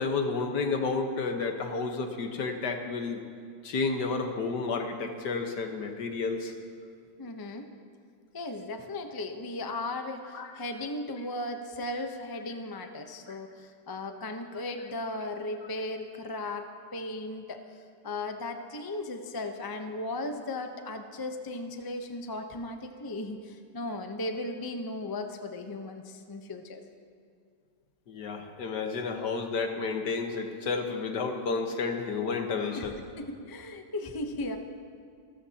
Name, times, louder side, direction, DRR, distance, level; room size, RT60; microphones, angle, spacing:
voice 1, 0.0-3.2 3.6-6.5 10.3-10.5 13.3-13.4 28.1-33.0, left 4 dB, 75° left, 4 dB, 1.8 m, -31 dB
voice 2, 7.2-7.7 8.3-16.7 16.9-17.6 18.0-26.8 32.7-34.6, left 2 dB, 25° left, 5 dB, 0.5 m, -36 dB
27.0 x 13.5 x 2.9 m, 2.3 s
omnidirectional pair, 1.8 m